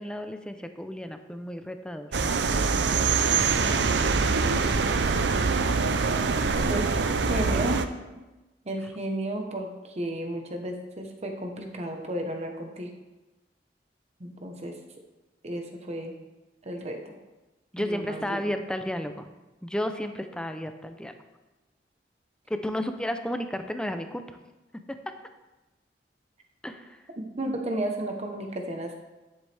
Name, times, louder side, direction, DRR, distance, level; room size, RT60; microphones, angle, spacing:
voice 1, 0.0-2.2 17.7-19.3 19.6-21.1 22.5-24.2 24.9-25.2 26.6-27.0, left 1 dB, 5° left, 7 dB, 0.6 m, -32 dB
sound 1, 2.1-7.9, right 4 dB, 70° right, 0.6 m, -24 dB
voice 2, 6.7-7.0 7.3-7.8 8.6-12.9 14.2-14.7 15.4-16.1 16.6-17.2 17.8-18.4 27.1-28.9, right 1 dB, 40° right, 3 dB, 1.1 m, -33 dB
10.5 x 8.0 x 3.5 m, 1.1 s
head